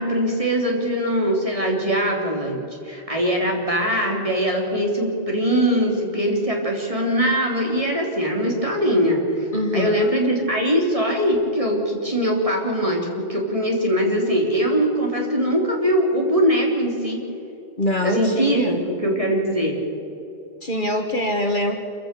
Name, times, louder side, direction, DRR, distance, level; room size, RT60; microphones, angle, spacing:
voice 1, 0.0-9.5 9.7-17.2 18.0-19.8, equal, 30° right, -1 dB, 3.6 m, -22 dB
voice 2, 9.5-10.0 17.8-18.8 20.6-21.7, left 1 dB, 45° left, 4 dB, 1.7 m, -23 dB
27.0 x 15.5 x 6.9 m, 3.0 s
omnidirectional pair, 1.2 m